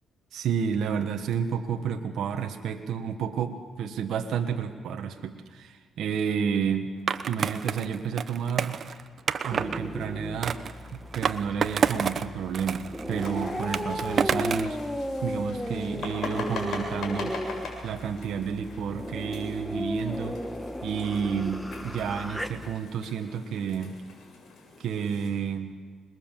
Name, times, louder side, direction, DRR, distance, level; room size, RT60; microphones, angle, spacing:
voice 1, 0.3-6.9 7.3-8.8 9.4-10.6 10.9-14.8 15.2-17.4 17.8-20.4 20.8-24.0 24.8-25.7, right 7 dB, 70° right, 4 dB, 1.5 m, -30 dB
Skateboard, 7.1-9.8 10.4-12.3 12.5-14.7, right 6 dB, 50° right, 1.0 m, -29 dB
sound 1, 9.5-22.8, equal, 5° left, 1.5 m, -35 dB
sound 2, 13.1-25.3, left 3 dB, 65° left, 7.7 m, -42 dB
26.0 x 21.5 x 7.5 m, 1.5 s
cardioid pair, 90°, 0 cm